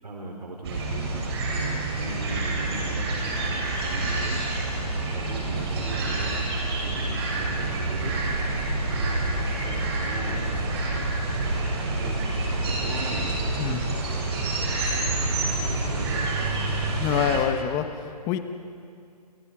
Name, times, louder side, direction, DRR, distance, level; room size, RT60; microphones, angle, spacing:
voice 1, 0.0-4.4 4.8-8.2 8.9-10.6 11.5-16.4, right 2 dB, 80° right, 0 dB, 4.8 m, -39 dB
sound 1, 0.6-17.4, right 2 dB, 40° right, 7.2 m, -27 dB
voice 2, 17.0-18.4, left 9 dB, 15° left, 8 dB, 1.3 m, -26 dB
29.5 x 28.5 x 5.0 m, 2.5 s
hypercardioid pair, 150°, 21 cm